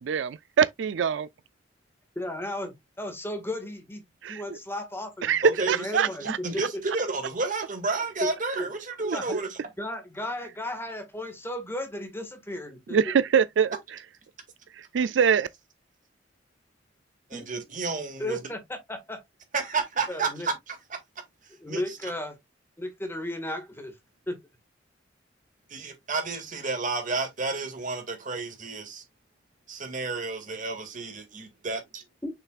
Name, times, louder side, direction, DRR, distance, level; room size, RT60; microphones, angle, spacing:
voice 1, 0.0-1.3 4.2-4.6 5.2-6.4 9.0-9.4 12.9-13.7 14.9-15.5, right 7 dB, 80° right, 0.4 m, -24 dB
voice 2, 2.1-4.0 4.3-5.3 5.7-6.8 8.6-8.7 9.1-9.4 9.8-13.0 17.3-17.5 18.2-19.2 20.1-20.5 21.6-22.4 22.8-23.9 24.3-24.4 32.2-32.3, left 1 dB, 15° left, 1.7 m, -35 dB
voice 3, 5.4-9.5 17.3-18.4 19.5-20.8 21.7-22.1 25.7-29.0 29.7-32.0, right 3 dB, 45° right, 2.1 m, -31 dB
6.9 x 5.8 x 2.4 m
head